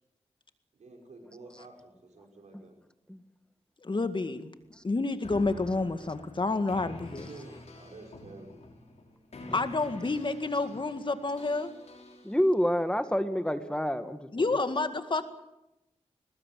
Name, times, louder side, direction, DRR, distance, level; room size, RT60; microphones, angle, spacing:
voice 1, 0.7-2.7 6.8-8.5, right 3 dB, 90° right, 1 dB, 5.7 m, -50 dB
voice 2, 3.8-4.5 4.8-7.3 9.5-11.7 14.3-15.2, left 3 dB, 45° left, 9 dB, 2.0 m, -29 dB
sound 1, 5.2-12.6, left 2 dB, 70° left, 5.6 m, -48 dB
voice 3, 12.2-14.5, equal, 10° left, 10 dB, 1.7 m, -28 dB
21.5 x 20.5 x 7.6 m, 0.92 s
cardioid pair, 60°, 12 cm